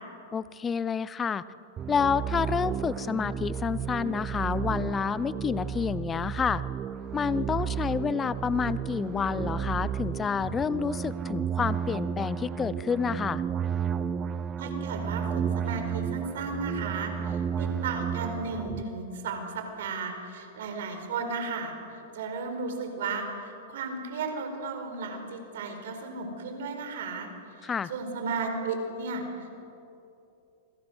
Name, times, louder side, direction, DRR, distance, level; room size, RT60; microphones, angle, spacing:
voice 1, 0.3-1.4 1.9-6.6 7.1-13.4 27.6-27.9, left 6 dB, 15° left, 16 dB, 0.7 m, -29 dB
sound 1, 1.8-18.8, right 8 dB, 25° right, 0.8 m, -32 dB
voice 2, 14.6-27.3 27.6-29.5, right 4 dB, 75° right, 6 dB, 4.7 m, -34 dB
28.5 x 22.0 x 6.4 m, 2.8 s
hypercardioid pair, 140°, 0 cm